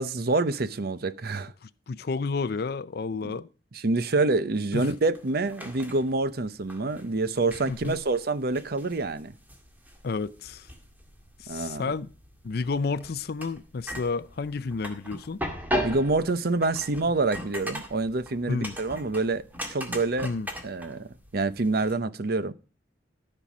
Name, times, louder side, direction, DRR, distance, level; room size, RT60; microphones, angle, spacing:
voice 1, 0.0-1.5 3.2-3.3 3.8-9.3 11.5-11.9 15.8-19.4 19.7-20.3 20.6-22.5, right 3 dB, 55° right, 0.7 m, -27 dB
voice 2, 1.6-3.5 4.7-5.0 7.7-8.0 10.0-10.7 11.4-12.1 12.4-15.4 18.5-18.8 20.2-20.5, left 4 dB, 55° left, 0.5 m, -31 dB
sound 1, 4.8-21.9, equal, 10° right, 2.0 m, -39 dB
14.5 x 5.5 x 6.1 m
head